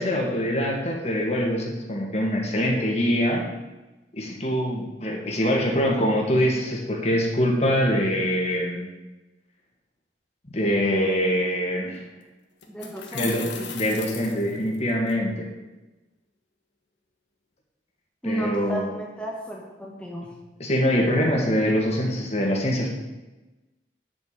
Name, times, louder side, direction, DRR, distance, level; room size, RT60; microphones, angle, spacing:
voice 1, 0.0-3.4 4.1-8.9 10.5-12.0 13.1-13.5 13.7-15.5 18.2-18.9 20.6-22.9, equal, 35° left, -1 dB, 2.2 m, -24 dB
sound 1, 11.9-12.0 12.6-15.1, left 7 dB, 85° left, 1.5 m, -37 dB
voice 2, 12.7-13.7 18.2-20.3, right 1 dB, 5° left, -2 dB, 1.3 m, -33 dB
10.0 x 7.3 x 5.3 m, 1.1 s
head